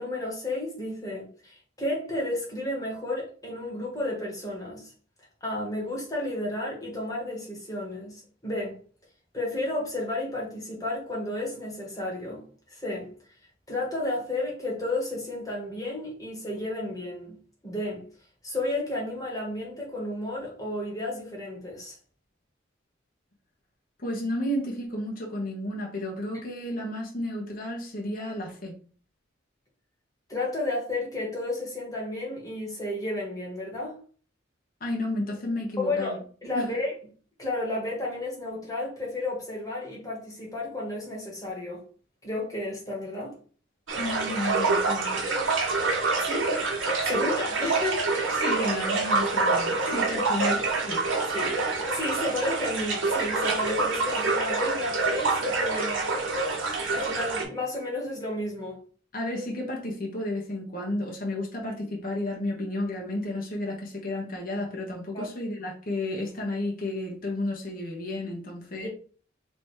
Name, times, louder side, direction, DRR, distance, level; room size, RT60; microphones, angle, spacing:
voice 1, 0.0-4.9 5.4-8.8 9.3-13.1 13.7-17.4 17.6-18.0 18.4-22.0 30.3-33.9 35.8-36.9 37.4-41.8 42.2-43.3 46.2-46.5 47.0-48.1 49.9-50.0 50.4-50.6 51.3-56.1 56.9-58.8 65.1-65.3 68.8-68.9, left 2 dB, 20° left, 1.7 m, -32 dB
voice 2, 24.0-28.8 34.8-36.2 36.5-36.7 43.9-45.2 47.1-47.2 48.4-50.6 50.8-51.0 59.1-68.9, left 1 dB, 45° left, 1.1 m, -32 dB
sound 1, 43.9-57.4, right 3 dB, 80° right, 1.3 m, -26 dB
3.4 x 3.0 x 4.5 m
head